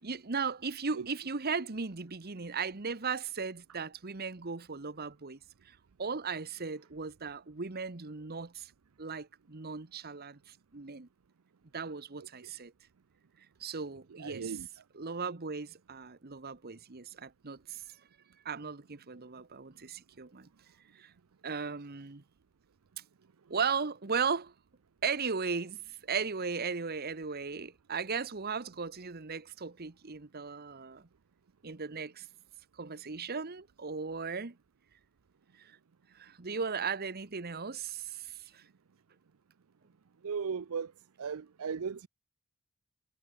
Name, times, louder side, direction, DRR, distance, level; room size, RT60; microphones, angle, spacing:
voice 1, 0.0-5.4 5.6-8.7 9.0-11.1 11.7-12.7 13.6-14.6 14.9-17.8 18.4-20.5 20.9-21.1 21.4-22.2 23.5-24.5 25.0-31.1 31.6-32.3 32.8-34.6 35.6-35.8 36.1-38.6, right 5 dB, 45° right, 1.1 m, -37 dB
voice 2, 14.1-14.7 40.2-40.9 41.2-42.1, right 6 dB, 75° right, 0.5 m, -36 dB
head